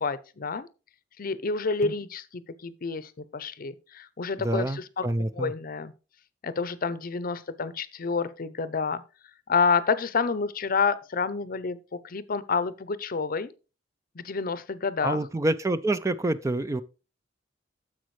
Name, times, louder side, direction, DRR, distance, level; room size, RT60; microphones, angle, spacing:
voice 1, 0.0-0.7 1.2-5.1 5.3-5.9 6.4-9.0 9.5-11.8 12.0-13.5 14.2-15.2, left 4 dB, 50° left, 0.6 m, -28 dB
voice 2, 4.4-5.5 15.0-16.8, right 2 dB, 15° right, 0.4 m, -27 dB
10.5 x 7.4 x 3.2 m
head